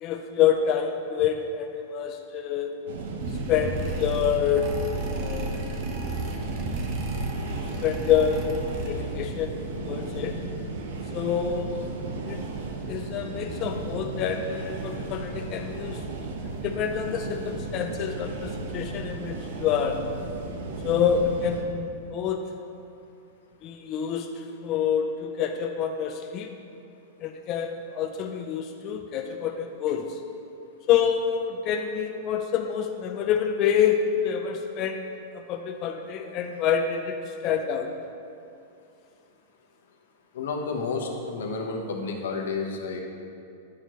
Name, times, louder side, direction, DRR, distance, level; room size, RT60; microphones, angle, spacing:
voice 1, 0.0-2.7 3.5-4.7 5.0-5.5 7.8-9.5 9.8-10.4 11.1-11.9 12.2-12.4 12.9-16.0 16.4-20.0 20.8-22.5 23.6-26.5 27.2-30.2 30.9-35.1 35.3-37.2 37.4-37.9, left 8 dB, 35° left, 4 dB, 0.4 m, -27 dB
sound 1, 2.9-21.6, right 3 dB, 75° right, 0.9 m, -35 dB
sound 2, 3.2-9.3, right 1 dB, 40° right, 0.8 m, -33 dB
voice 2, 40.3-43.0, left 4 dB, 85° left, 2 dB, 1.0 m, -31 dB
9.6 x 6.5 x 3.1 m, 2.6 s
supercardioid pair, 150°, 0 cm